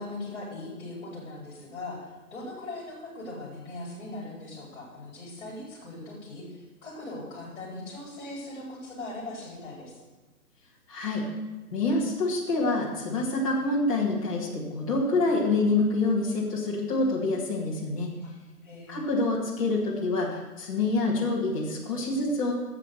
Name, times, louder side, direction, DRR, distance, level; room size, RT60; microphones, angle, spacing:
voice 1, 0.0-10.0 18.2-18.3 18.6-19.1, left 2 dB, 40° left, -6 dB, 4.5 m, -40 dB
voice 2, 10.9-11.2 11.7-18.1 18.9-22.5, left 2 dB, 20° left, -6 dB, 2.1 m, -26 dB
11.0 x 7.7 x 6.6 m, 1.2 s
hypercardioid pair, 170°, 46 cm